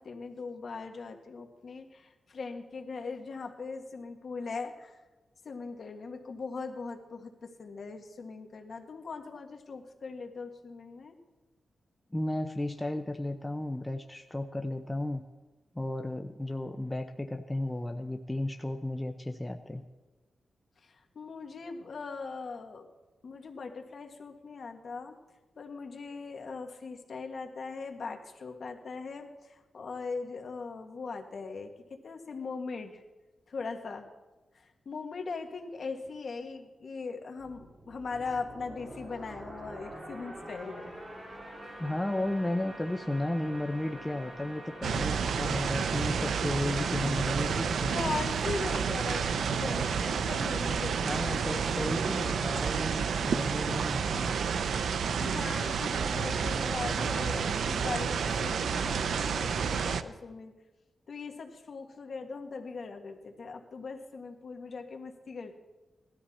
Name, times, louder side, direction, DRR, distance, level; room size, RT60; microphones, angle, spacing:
voice 1, 0.0-5.0 5.4-11.1 20.8-22.9 23.2-25.1 25.5-33.0 33.5-34.1 34.5-40.9 47.9-51.9 55.2-60.5 61.1-65.6, left 4 dB, 55° left, 4 dB, 1.7 m, -40 dB
voice 2, 12.1-15.3 15.7-19.8 41.8-48.2 51.0-54.3, left 1 dB, 10° left, 4 dB, 0.7 m, -34 dB
sound 1, 37.4-46.9, right 1 dB, 35° right, 3.5 m, -46 dB
sound 2, 44.8-60.0, right 6 dB, 85° right, 0.6 m, -30 dB
18.5 x 13.0 x 4.3 m, 1.1 s
wide cardioid pair, 125°, 0 cm